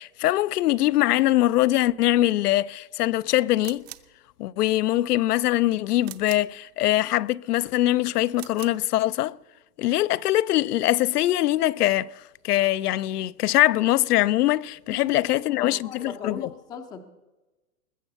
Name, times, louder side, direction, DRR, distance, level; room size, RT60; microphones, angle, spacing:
voice 1, 0.0-3.8 4.4-9.4 9.8-12.1 12.4-16.4, left 15 dB, 80° left, 0.6 m, -22 dB
sound 1, 3.6-4.2 6.0-6.6 8.3-8.8, right 16 dB, 45° right, 0.8 m, -42 dB
voice 2, 14.9-17.0, left 6 dB, 10° left, 0.5 m, -38 dB
20.5 x 7.1 x 6.8 m
hypercardioid pair, 150°, 46 cm